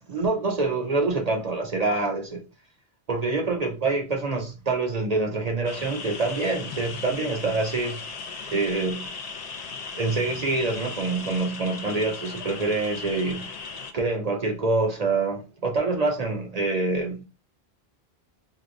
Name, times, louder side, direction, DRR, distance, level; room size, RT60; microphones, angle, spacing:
voice 1, 0.1-2.4 3.1-8.0 8.5-9.1 9.9-13.6 13.9-17.2, right 3 dB, 45° right, 0.6 m, -26 dB
sound 1, 5.6-13.9, left 5 dB, 55° left, 0.4 m, -37 dB
4.6 x 2.1 x 2.5 m
omnidirectional pair, 1.1 m